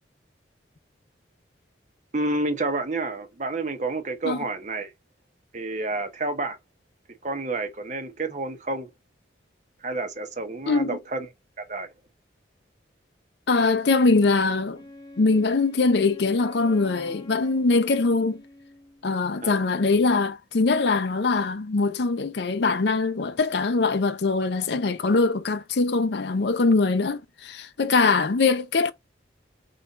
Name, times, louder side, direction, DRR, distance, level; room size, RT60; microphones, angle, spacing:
voice 1, 2.1-4.9 5.5-6.6 7.2-8.9 9.8-11.3 11.6-11.9 19.4-19.6, right 2 dB, 40° right, 0.8 m, -29 dB
voice 2, 10.7-11.0 13.5-14.8 15.2-18.4 19.0-28.9, left 3 dB, 60° left, 0.5 m, -22 dB
Wind instrument woodwind instrument, 14.7-19.1, left 2 dB, 20° left, 0.9 m, -46 dB
3.9 x 2.5 x 3.9 m
head